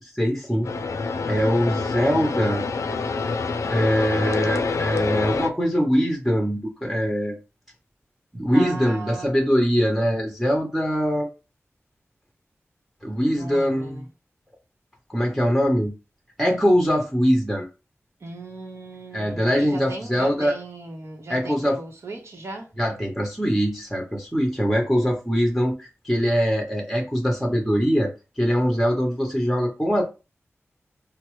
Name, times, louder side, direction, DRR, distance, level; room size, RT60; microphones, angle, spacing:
voice 1, 0.1-0.7 1.3-2.7 3.7-7.4 8.3-11.3 13.0-14.1 15.1-15.9 16.4-17.7 19.1-20.5 21.3-21.8 22.8-30.0, equal, ahead, 0.9 m, -22 dB
sound 1, 0.6-5.5, left 4 dB, 85° left, 0.4 m, -26 dB
voice 2, 8.5-9.3 13.3-14.0 18.2-22.7, right 2 dB, 65° right, 0.9 m, -37 dB
4.4 x 2.0 x 3.0 m
wide cardioid pair, 65°, 5 cm